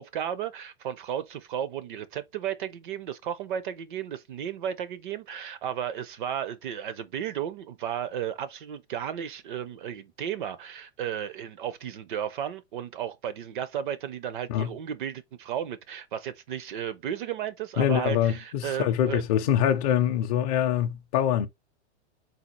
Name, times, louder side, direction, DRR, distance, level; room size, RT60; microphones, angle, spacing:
voice 1, 0.0-19.2, right 9 dB, 45° right, 0.5 m, -34 dB
voice 2, 17.8-21.5, left 10 dB, 35° left, 0.5 m, -24 dB
4.1 x 2.3 x 4.4 m
supercardioid pair, 165°, 35 cm